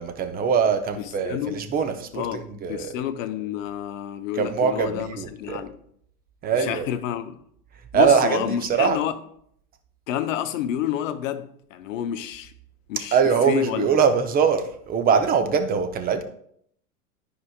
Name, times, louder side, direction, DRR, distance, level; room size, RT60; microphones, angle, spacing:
voice 1, 0.0-2.9 4.4-5.6 6.4-6.9 7.9-9.0 13.1-16.2, right 6 dB, 20° right, 0.7 m, -22 dB
voice 2, 1.0-1.6 2.1-5.8 6.5-7.4 7.9-9.2 10.1-12.5 12.9-14.0, left 11 dB, 55° left, 0.8 m, -29 dB
13.5 x 4.9 x 2.3 m
figure-of-eight pair, 95°, 47 cm